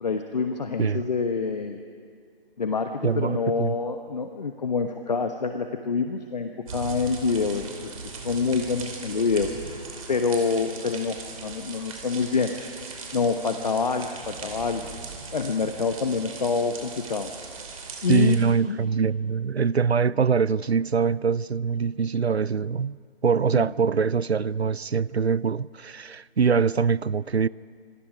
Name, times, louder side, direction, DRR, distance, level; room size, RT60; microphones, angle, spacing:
voice 1, 0.0-1.8 2.6-9.8 10.1-12.8 13.1-14.8 15.3-17.3 18.0-18.4 18.7-18.8 23.5-23.7, left 4 dB, 40° left, 1.1 m, -26 dB
voice 2, 3.0-3.8 18.1-23.0 23.2-27.5, right 6 dB, 85° right, 0.6 m, -23 dB
sound 1, 6.7-18.4, right 4 dB, 35° right, 2.8 m, -39 dB
26.0 x 24.0 x 5.0 m
figure-of-eight pair, 150°, 31 cm